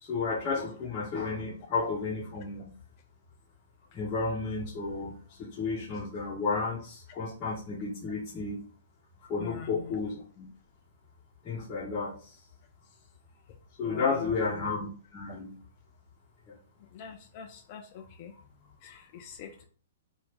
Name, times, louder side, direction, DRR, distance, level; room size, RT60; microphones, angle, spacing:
voice 1, 0.0-2.7 3.9-8.6 9.3-10.5 11.4-12.3 13.8-15.6, left 4 dB, 25° left, -8 dB, 1.1 m, -32 dB
voice 2, 13.8-14.2 16.9-17.8 18.2-18.3 18.8-19.5, left 7 dB, 45° left, 5 dB, 0.4 m, -43 dB
2.7 x 2.6 x 3.4 m, 0.42 s
hypercardioid pair, 125°, 0 cm